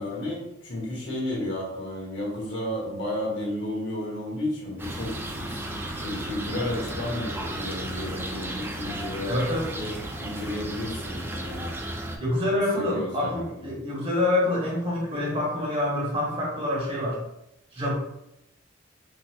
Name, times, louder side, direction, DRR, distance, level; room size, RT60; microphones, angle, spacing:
voice 1, 0.0-9.3 9.7-11.7 12.5-13.7, left 1 dB, 65° left, -3 dB, 1.1 m, -33 dB
sound 1, 4.8-12.2, right 1 dB, 10° right, 0.3 m, -34 dB
voice 2, 9.2-9.8 12.2-17.2 17.7-17.9, left 1 dB, 30° right, -4 dB, 1.0 m, -26 dB
3.8 x 2.9 x 2.2 m, 0.83 s
head